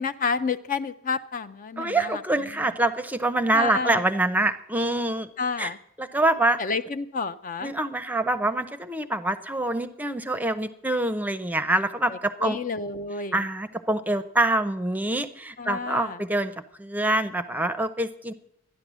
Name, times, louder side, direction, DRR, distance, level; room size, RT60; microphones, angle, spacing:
voice 1, 0.0-2.2 3.5-4.0 5.4-5.8 6.6-7.7 12.1-13.4 15.6-16.2, left 5 dB, 35° left, 11 dB, 0.5 m, -30 dB
voice 2, 1.8-5.3 5.6-5.7 6.0-6.6 7.6-12.6 13.3-18.3, right 2 dB, 5° right, 11 dB, 0.6 m, -25 dB
13.5 x 10.5 x 6.2 m, 0.75 s
head